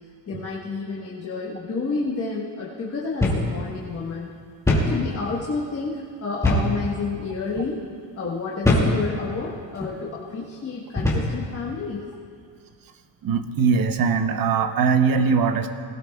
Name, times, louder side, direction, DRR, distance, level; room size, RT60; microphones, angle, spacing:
voice 1, 0.3-4.3 4.8-7.8 8.2-12.0, left 4 dB, 30° left, -4 dB, 1.3 m, -30 dB
sound 1, 3.2-3.5 3.8-3.9 4.7-5.0 6.4-6.8 7.5-7.7 8.6-9.0 9.7-9.9 11.0-11.4, left 1 dB, 5° left, 2.2 m, -21 dB
voice 2, 13.2-15.7, right 5 dB, 45° right, 8 dB, 0.8 m, -21 dB
20.0 x 17.5 x 2.3 m, 2.2 s
cardioid pair, 170°, 49 cm